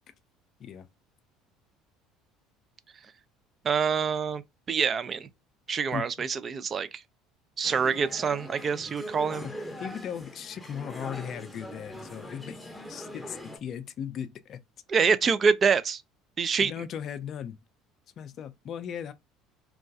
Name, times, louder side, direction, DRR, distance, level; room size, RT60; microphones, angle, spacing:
voice 1, 3.6-4.4 4.7-5.3 5.7-6.9 7.6-9.5 14.9-16.0 16.4-16.7, right 6 dB, 40° right, 0.3 m, -26 dB
voice 2, 5.9-6.3 9.4-9.5 9.8-14.6 16.6-17.6 18.2-19.1, left 8 dB, 50° left, 0.4 m, -38 dB
sound 1, 7.6-13.6, left 1 dB, 10° left, 0.6 m, -42 dB
2.3 x 2.2 x 2.6 m
supercardioid pair, 80°, 0 cm